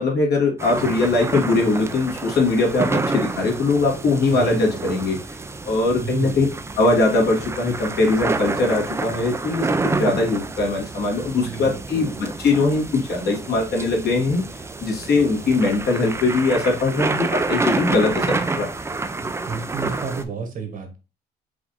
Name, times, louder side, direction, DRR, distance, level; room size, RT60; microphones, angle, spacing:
voice 1, 0.0-5.4 5.7-6.5 6.8-14.4 14.8-18.7, left 3 dB, 65° left, -1 dB, 1.9 m, -21 dB
sound 1, 0.6-20.2, right 3 dB, 15° right, 0.5 m, -28 dB
voice 2, 0.8-1.1 4.3-5.1 6.0-6.6 11.4-12.3 15.2-15.6 19.2-21.0, right 5 dB, 50° right, 5 dB, 1.3 m, -33 dB
4.8 x 2.7 x 3.8 m, 0.31 s
cardioid pair, 105°, 18 cm